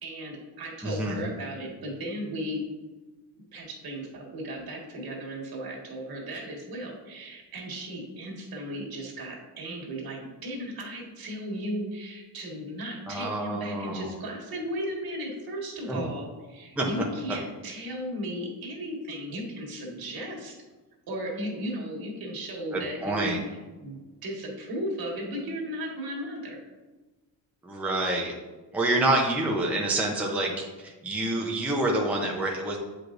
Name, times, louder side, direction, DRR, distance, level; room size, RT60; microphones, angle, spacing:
voice 1, 0.0-2.6 3.5-20.5 21.1-26.6, equal, 55° right, -1 dB, 1.9 m, -36 dB
voice 2, 0.8-1.2 13.1-14.1 15.9-16.0 16.8-16.9 22.7-23.4 27.6-28.3 28.7-32.8, right 2 dB, 5° right, -2 dB, 0.7 m, -27 dB
7.8 x 4.9 x 2.6 m, 1.2 s
cardioid pair, 115°, 43 cm